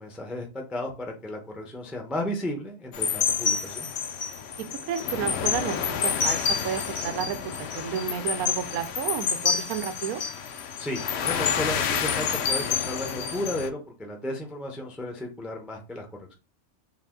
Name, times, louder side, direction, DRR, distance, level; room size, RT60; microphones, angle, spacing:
voice 1, 0.0-3.9 10.8-16.1, left 1 dB, ahead, 2 dB, 0.4 m, -34 dB
sound 1, 2.9-13.7, left 6 dB, 65° left, 0.7 m, -28 dB
voice 2, 4.9-6.4 6.6-10.2, right 8 dB, 85° right, 9 dB, 1.1 m, -31 dB
4.0 x 2.3 x 3.5 m, 0.30 s
omnidirectional pair, 1.5 m